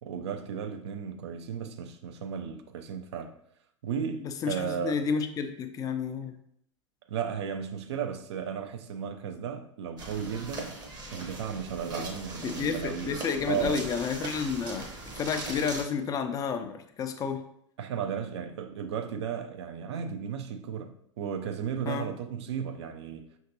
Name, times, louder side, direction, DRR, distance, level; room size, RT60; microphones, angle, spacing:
voice 1, 0.0-3.3 3.8-5.0 7.1-10.7 11.1-13.2 13.5-13.9 17.8-23.4, right 7 dB, 60° right, 0.5 m, -35 dB
voice 2, 4.2-6.4 12.4-14.9 15.2-17.4 21.9-22.1, left 6 dB, 20° left, 0.4 m, -31 dB
sound 1, 10.0-15.8, right 2 dB, 25° right, 0.8 m, -40 dB
5.7 x 2.6 x 2.7 m
figure-of-eight pair, 90°, 16 cm